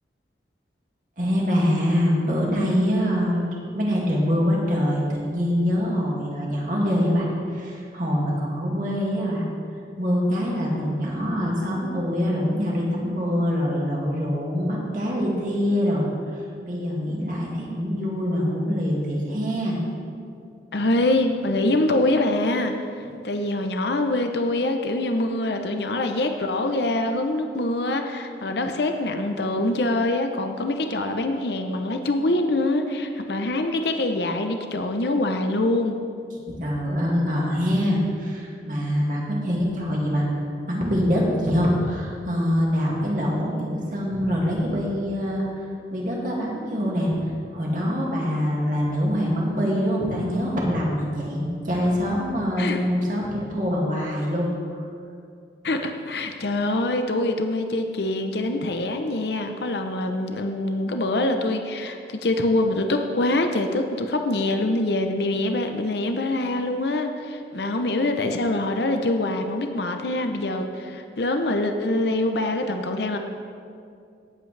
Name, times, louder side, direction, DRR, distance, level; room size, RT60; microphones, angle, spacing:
voice 1, 1.2-3.4 3.7-9.4 10.0-19.8 36.5-45.6 45.9-54.5 54.7-54.8, equal, 45° right, -3 dB, 2.2 m, -24 dB
voice 2, 20.7-36.0 52.6-52.8 55.6-73.2, left 2 dB, 70° left, 5 dB, 0.7 m, -24 dB
18.0 x 8.2 x 3.3 m, 2.4 s
head